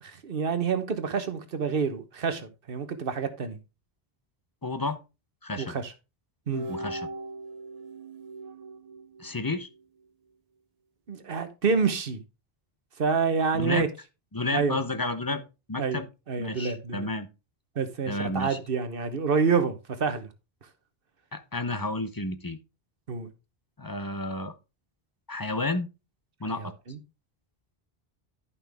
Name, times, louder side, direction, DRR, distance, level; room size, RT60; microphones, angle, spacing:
voice 1, 0.0-3.6 5.6-5.9 6.5-6.7 11.1-12.2 13.0-13.9 14.5-14.8 15.8-16.0 16.3-17.1 17.8-20.3 23.1-23.3 26.6-27.0, right 5 dB, 65° right, 1.2 m, -28 dB
voice 2, 4.6-5.0 5.4-5.7 6.7-7.1 9.2-9.7 13.5-13.9 14.3-15.4 15.7-16.1 16.4-17.3 18.1-18.6 21.3-22.6 23.8-24.5 25.3-25.9 26.4-26.7, left 2 dB, 25° left, 0.6 m, -31 dB
sound 1, 6.5-9.8, right 2 dB, 45° right, 0.6 m, -39 dB
11.0 x 5.6 x 3.4 m
omnidirectional pair, 1.0 m